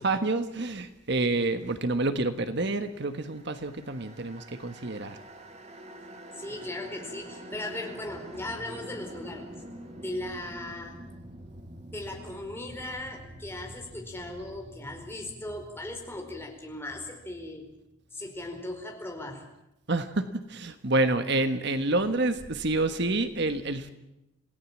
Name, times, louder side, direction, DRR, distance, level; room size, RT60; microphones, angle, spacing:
voice 1, 0.0-5.2 19.9-23.9, right 2 dB, 55° right, 9 dB, 1.3 m, -28 dB
sound 1, 3.0-18.2, equal, 30° right, 2.3 m, -47 dB
voice 2, 6.4-11.0 11.9-17.7 18.1-19.5, left 1 dB, 10° left, 2 dB, 4.6 m, -38 dB
27.5 x 17.5 x 7.4 m, 0.90 s
head